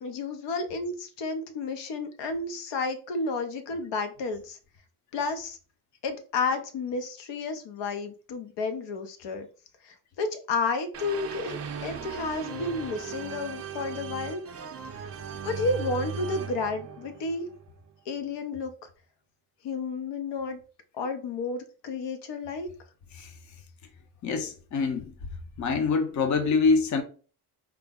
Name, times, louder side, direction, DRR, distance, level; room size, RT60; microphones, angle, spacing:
voice 1, 0.0-4.6 5.1-5.6 6.0-9.5 9.8-14.4 15.4-17.5 18.1-18.7 19.6-20.6 20.9-22.7, left 3 dB, 90° left, 0.7 m, -31 dB
sound 1, 10.9-17.9, right 7 dB, 40° right, 0.4 m, -38 dB
voice 2, 24.2-25.1 25.6-27.0, left 4 dB, 45° left, 0.6 m, -25 dB
4.6 x 2.0 x 3.6 m
cardioid pair, 170°, 41 cm